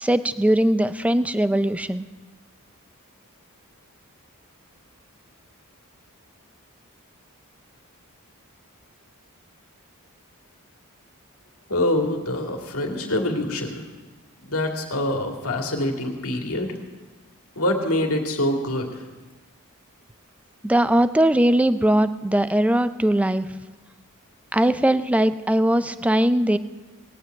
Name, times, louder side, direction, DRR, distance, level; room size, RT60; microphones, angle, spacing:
voice 1, 0.0-2.1 20.6-23.5 24.5-26.6, right 1 dB, 5° right, 12 dB, 0.4 m, -20 dB
voice 2, 11.7-13.8 14.4-16.7 17.6-19.0, left 1 dB, 70° left, 2 dB, 2.3 m, -25 dB
19.0 x 7.5 x 9.0 m, 1.3 s
head